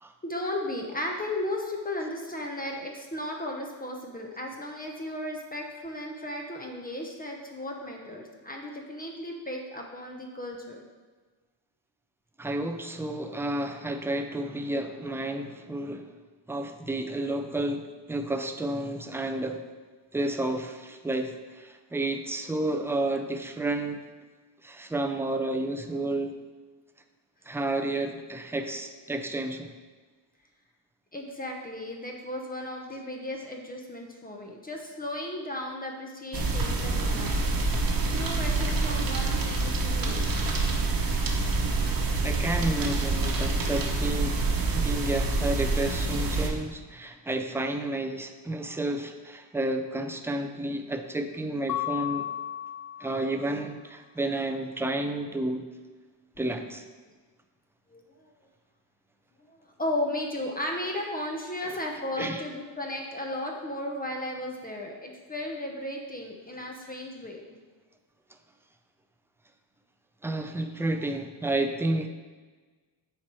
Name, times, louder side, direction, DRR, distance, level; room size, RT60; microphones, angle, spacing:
voice 1, 0.2-10.8 31.1-37.9 38.1-40.7 57.9-58.3 59.5-67.4, left 1 dB, 20° left, 1 dB, 0.8 m, -35 dB
voice 2, 12.4-16.1 16.5-19.6 20.1-24.0 24.6-26.4 27.5-29.7 42.2-52.3 53.0-55.6 56.4-56.9 62.2-62.4 70.2-72.1, right 1 dB, 5° right, 5 dB, 0.4 m, -31 dB
sound 1, 36.3-46.5, right 3 dB, 50° right, 1.1 m, -27 dB
Mallet percussion, 51.7-53.5, left 13 dB, 55° left, 0.5 m, -34 dB
7.4 x 4.5 x 4.6 m, 1.4 s
cardioid pair, 120°, 45 cm